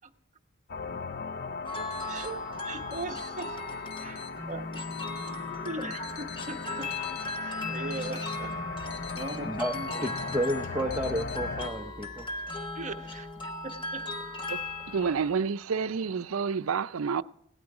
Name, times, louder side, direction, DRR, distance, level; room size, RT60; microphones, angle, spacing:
sound 1, 0.7-11.7, left 4 dB, 45° left, 0.6 m, -38 dB
sound 2, 1.4-11.8, left 7 dB, 90° left, 1.3 m, -49 dB
sound 3, 1.7-15.3, left 2 dB, 25° left, 1.4 m, -38 dB
voice 1, 2.1-4.8 5.6-8.6 9.1-10.1 12.7-13.3 13.6-14.1, right 2 dB, 35° right, 5 dB, 1.0 m, -40 dB
voice 2, 9.4-9.8 10.0-12.3, equal, 10° right, 3 dB, 0.7 m, -31 dB
voice 3, 14.5-17.2, right 6 dB, 80° right, 14 dB, 0.5 m, -29 dB
17.0 x 12.5 x 4.8 m, 0.72 s
head